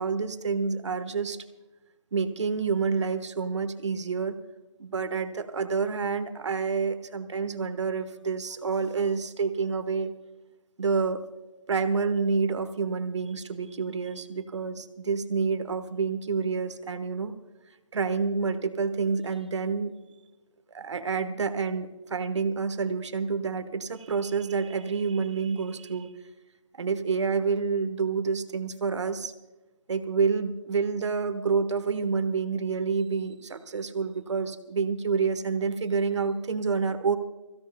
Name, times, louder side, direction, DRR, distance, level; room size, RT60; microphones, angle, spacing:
voice 1, 0.0-1.4 2.1-4.4 4.8-10.1 10.8-11.2 11.7-17.3 17.9-19.9 20.7-26.1 26.8-29.3 29.9-37.2, right 5 dB, 60° right, 10 dB, 1.3 m, -28 dB
24.0 x 16.0 x 2.2 m, 1.1 s
hypercardioid pair, 165°, 17 cm